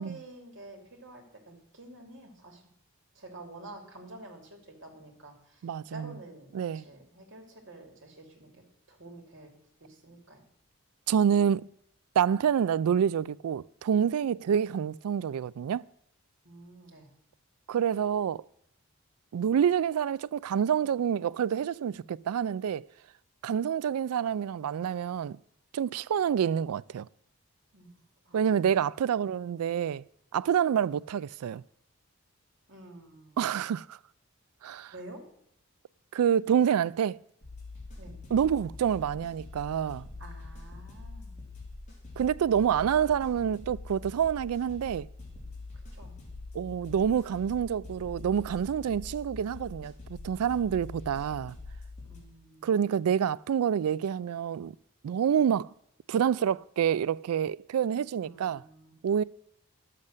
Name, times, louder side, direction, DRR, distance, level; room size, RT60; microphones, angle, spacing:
voice 1, 0.0-2.6 3.1-9.5 9.8-10.4 16.4-17.1 27.7-28.4 32.7-33.6 34.9-35.2 38.0-38.2 40.2-41.3 45.7-46.2 52.1-52.7 58.2-58.9, right 2 dB, 55° right, 2.9 m, -49 dB
voice 2, 5.6-6.1 6.5-6.8 11.1-11.7 12.2-15.8 17.7-18.4 19.3-22.9 23.4-25.4 25.7-27.1 28.3-30.0 30.3-31.6 33.4-34.0 34.6-34.9 36.1-37.2 38.3-40.1 42.2-45.1 46.5-49.9 50.2-51.6 52.6-54.7 55.0-55.7 56.1-58.6 59.0-59.2, right 8 dB, 90° right, 0.3 m, -27 dB
sound 1, 37.4-52.2, left 3 dB, 30° left, 3.1 m, -44 dB
11.5 x 7.6 x 6.5 m
head